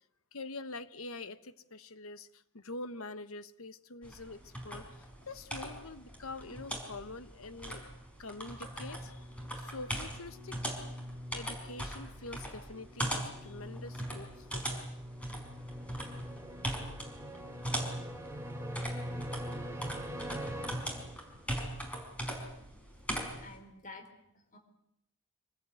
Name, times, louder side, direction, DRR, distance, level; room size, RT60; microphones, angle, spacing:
voice 1, 0.3-7.9 8.2-9.3 9.6-10.5 11.3-14.8, left 3 dB, 70° left, 13 dB, 1.2 m, -45 dB
sound 1, 4.0-23.6, equal, 5° left, 5.0 m, -41 dB
sound 2, 8.9-21.5, equal, 15° right, 2.7 m, -44 dB
voice 2, 23.4-24.6, left 3 dB, 35° left, 5 dB, 4.5 m, -50 dB
25.5 x 19.5 x 9.3 m, 0.80 s
head